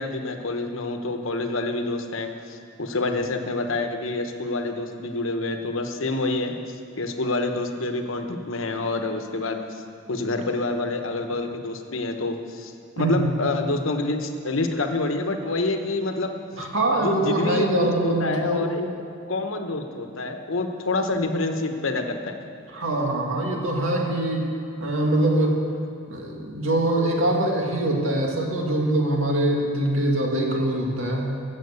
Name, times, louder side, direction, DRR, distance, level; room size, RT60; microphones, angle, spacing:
voice 1, 0.0-9.8 10.1-16.4 17.0-18.9 19.3-22.4, left 2 dB, 75° left, 6 dB, 1.1 m, -27 dB
voice 2, 13.0-13.4 16.6-18.7 22.7-24.5 24.8-25.6 26.1-31.3, right 1 dB, 75° right, 0 dB, 2.1 m, -23 dB
15.0 x 7.5 x 6.9 m, 2.6 s
head